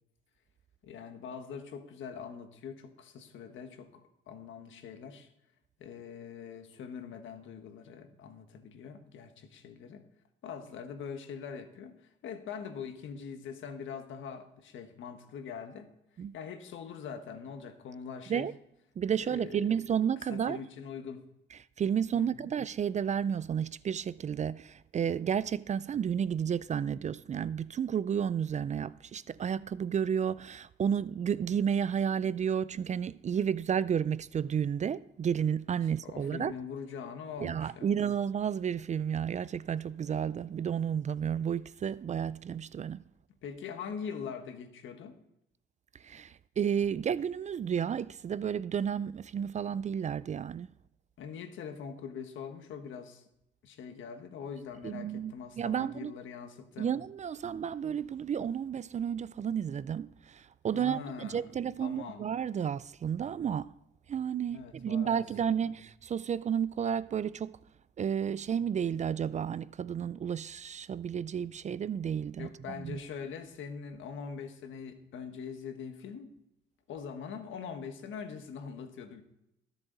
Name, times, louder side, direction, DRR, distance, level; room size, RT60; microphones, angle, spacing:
voice 1, 0.8-5.3 5.8-10.0 10.4-15.9 16.3-18.5 19.1-19.7 20.3-21.2 22.1-22.5 36.0-37.9 43.4-45.2 51.2-53.2 53.6-56.9 60.7-61.5 61.8-62.2 64.5-65.6 72.4-76.3 76.9-79.2, left 6 dB, 75° left, 1.6 m, -43 dB
voice 2, 19.0-20.6 21.8-36.5 37.4-43.0 46.0-50.7 54.8-56.1 56.8-63.7 64.1-67.5 68.0-73.0, right 8 dB, 35° right, 0.4 m, -32 dB
21.0 x 7.1 x 4.0 m
cardioid pair, 90°, 20 cm